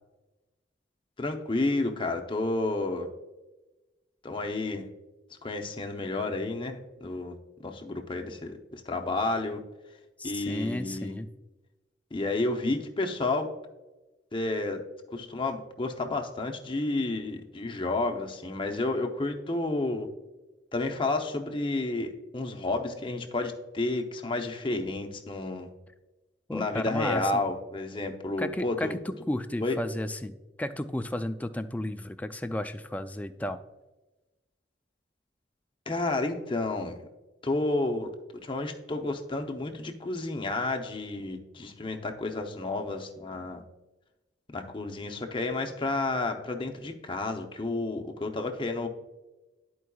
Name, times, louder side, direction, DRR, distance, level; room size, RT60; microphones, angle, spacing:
voice 1, 1.2-3.1 4.2-4.9 5.4-7.4 7.6-9.6 10.2-11.2 12.1-13.5 14.3-14.8 15.1-20.1 20.7-25.7 26.5-28.9 29.6-29.8 35.9-37.0 37.4-38.1 38.4-43.6 44.5-48.9, left 2 dB, 30° left, 4 dB, 0.7 m, -31 dB
voice 2, 10.2-11.3 26.5-27.4 28.4-33.6, left 1 dB, 10° left, 9 dB, 0.3 m, -33 dB
12.5 x 4.6 x 2.3 m, 1.1 s
head